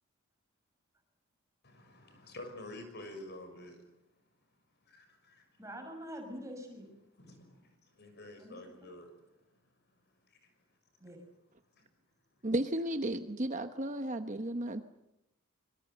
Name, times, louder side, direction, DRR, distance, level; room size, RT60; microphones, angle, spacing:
voice 1, 1.6-3.9 4.8-5.6 7.2-10.8 11.7-11.9, left 1 dB, 50° left, 7 dB, 6.2 m, -50 dB
voice 2, 5.6-6.9 8.4-8.9 11.0-11.2, equal, 15° right, 4 dB, 5.7 m, -45 dB
voice 3, 12.4-14.8, right 1 dB, 35° right, 8 dB, 1.0 m, -34 dB
25.5 x 23.5 x 7.9 m, 0.86 s
head